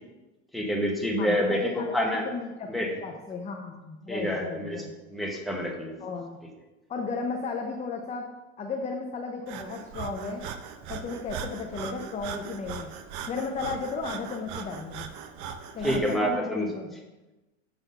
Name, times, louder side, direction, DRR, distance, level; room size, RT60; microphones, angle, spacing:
voice 1, 0.5-2.2 2.7-3.0 4.1-4.8 5.1-5.9 15.8-16.7, equal, ahead, -1 dB, 1.0 m, -27 dB
voice 2, 1.2-4.9 6.0-6.4 6.9-8.3 8.6-10.4 10.9-12.9 13.3-15.1 15.7-17.0, left 4 dB, 20° left, 2 dB, 0.6 m, -34 dB
Breathing, 9.5-16.2, right 7 dB, 50° right, 0.7 m, -39 dB
7.0 x 4.0 x 5.4 m, 1.1 s
supercardioid pair, 130°, 38 cm